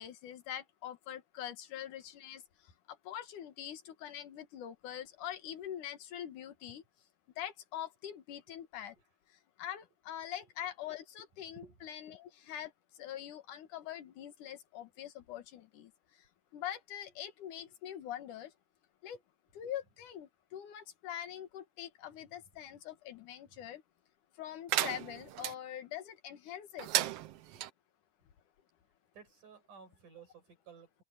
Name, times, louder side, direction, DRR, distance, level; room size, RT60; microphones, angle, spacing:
voice 1, 0.0-2.4 2.9-6.8 7.4-8.9 9.6-12.7 13.0-15.9 16.5-18.5 19.0-19.2 19.5-23.8 24.4-26.9, left 11 dB, 80° left, 3.1 m, -44 dB
voice 2, 11.5-11.8 12.1-12.2 17.7-17.8 19.1-19.2 23.5-23.6 27.4-27.6 29.1-31.0, right 5 dB, 90° right, 7.8 m, -56 dB
sound 1, 24.7-25.5 26.8-27.7, right 13 dB, 70° right, 1.5 m, -34 dB
open air
omnidirectional pair, 3.5 m